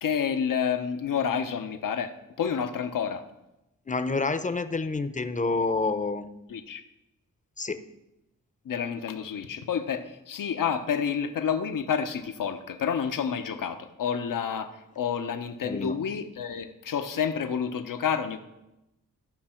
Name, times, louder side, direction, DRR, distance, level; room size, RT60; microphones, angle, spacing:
voice 1, 0.0-3.2 6.5-6.8 8.6-18.4, left 7 dB, 70° left, 8 dB, 0.9 m, -29 dB
voice 2, 3.9-6.3 7.6-7.8 15.6-16.0, left 3 dB, 20° left, 11 dB, 0.8 m, -28 dB
15.0 x 5.5 x 4.4 m, 0.93 s
cardioid pair, 55°, 34 cm